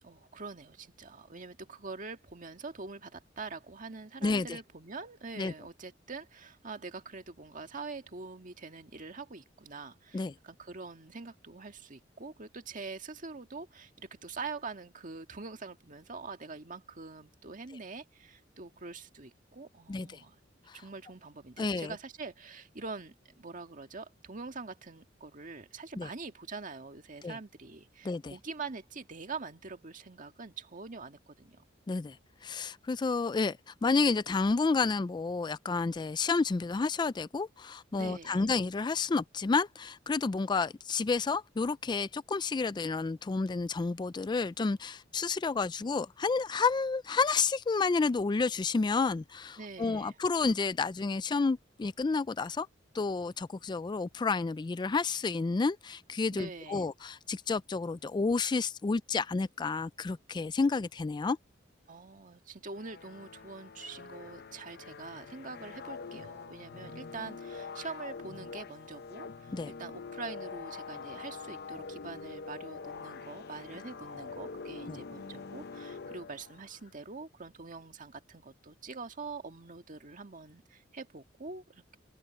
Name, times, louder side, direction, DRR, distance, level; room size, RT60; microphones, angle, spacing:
voice 1, 0.0-20.4 20.7-31.6 38.0-38.5 49.6-50.2 56.3-56.9 61.9-82.0, right 4 dB, 45° right, 1.8 m, -44 dB
voice 2, 4.2-4.6 5.4-5.5 10.1-10.3 19.9-20.2 20.7-20.8 21.6-21.9 26.0-26.1 27.2-27.4 28.0-28.4 31.9-32.2 32.4-52.7 52.9-61.4 69.5-69.7 74.9-75.0, left 4 dB, 25° left, 0.3 m, -30 dB
sound 1, 62.7-76.8, left 4 dB, 60° left, 0.7 m, -45 dB
open air
head